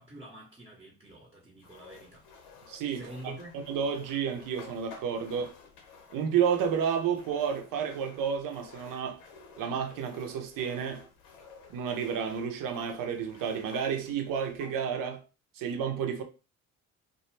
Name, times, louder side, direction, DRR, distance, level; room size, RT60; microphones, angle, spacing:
voice 1, 0.0-2.2 2.9-3.5, right 1 dB, 15° right, 0.9 m, -47 dB
sound 1, 1.6-14.8, left 5 dB, 70° left, 0.9 m, -52 dB
voice 2, 2.7-5.5 6.1-9.2 9.6-11.0 11.7-15.2 15.6-16.2, right 7 dB, 55° right, 0.8 m, -31 dB
2.3 x 2.2 x 3.1 m
hypercardioid pair, 60°, 40 cm